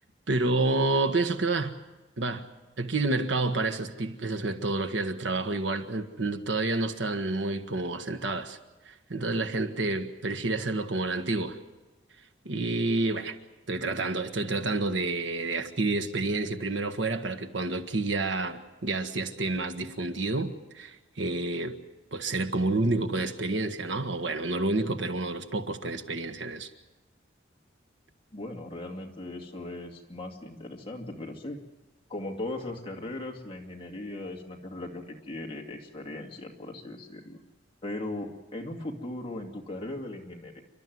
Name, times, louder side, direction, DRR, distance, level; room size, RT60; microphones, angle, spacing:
voice 1, 0.3-1.7 2.2-2.5 2.8-8.6 8.8-11.6 12.4-13.4 13.7-21.8 22.1-26.7, right 2 dB, 80° right, 7 dB, 1.5 m, -29 dB
voice 2, 28.3-31.6 32.1-37.4 37.8-40.6, left 2 dB, 25° left, 1 dB, 2.5 m, -38 dB
29.5 x 12.5 x 9.5 m, 1.1 s
head